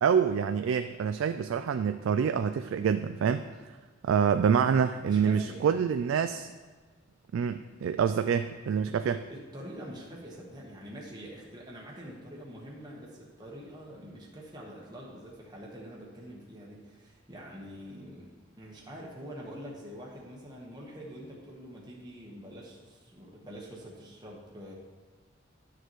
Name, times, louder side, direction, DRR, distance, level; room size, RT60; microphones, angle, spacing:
voice 1, 0.0-3.8 4.0-6.5 7.3-9.2, right 7 dB, 80° right, 9 dB, 0.3 m, -27 dB
voice 2, 5.0-5.6 8.9-9.0 9.3-24.7, equal, 20° right, -4 dB, 1.2 m, -45 dB
11.5 x 6.6 x 3.1 m, 1.4 s
head